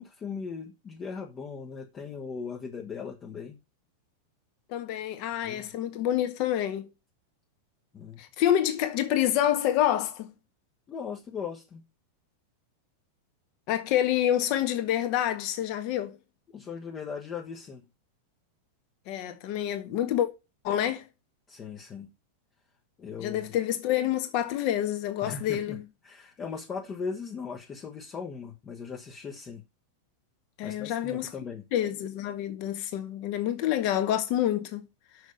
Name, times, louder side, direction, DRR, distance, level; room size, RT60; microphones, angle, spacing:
voice 1, 0.0-3.6 5.4-5.7 7.9-8.2 10.9-11.8 16.5-17.8 21.5-22.1 23.0-23.4 25.2-29.6 30.6-31.6, left 5 dB, 25° left, 1.3 m, -38 dB
voice 2, 4.7-6.9 8.2-10.3 13.7-16.2 19.1-20.3 20.6-21.1 23.2-25.8 30.6-31.3 31.7-34.9, left 11 dB, 45° left, 1.7 m, -27 dB
6.4 x 6.4 x 6.7 m
figure-of-eight pair, 90°, 0 cm